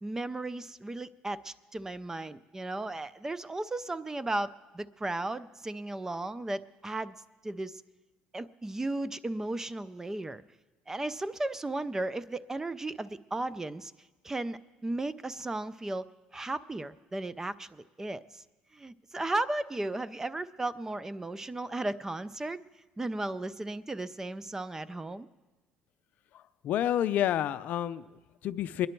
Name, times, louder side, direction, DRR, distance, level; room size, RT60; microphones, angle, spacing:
voice 1, 0.0-7.1 7.4-7.8 8.3-10.4 10.9-13.9 14.2-16.1 16.3-18.4 18.7-22.6 23.0-25.3, right 2 dB, 15° right, 17 dB, 0.5 m, -35 dB
voice 2, 26.3-28.9, left 11 dB, 60° left, 12 dB, 0.5 m, -30 dB
23.0 x 10.5 x 4.5 m, 1.2 s
cardioid pair, 100°, 3 cm